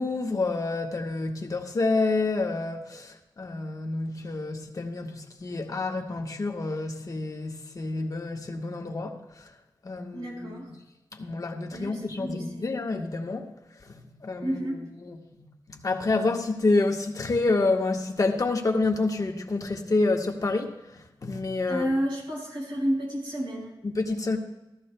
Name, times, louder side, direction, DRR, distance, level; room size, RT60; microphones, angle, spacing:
voice 1, 0.0-9.5 9.8-10.7 11.1-13.5 13.9-20.8 21.2-21.9 23.8-24.4, left 3 dB, 45° left, 2 dB, 1.2 m, -28 dB
voice 2, 10.1-10.7 11.7-12.7 14.4-14.8 21.7-23.7, equal, 90° right, -2 dB, 4.8 m, -31 dB
17.0 x 13.5 x 2.2 m, 0.95 s
wide cardioid pair, 110°, 8 cm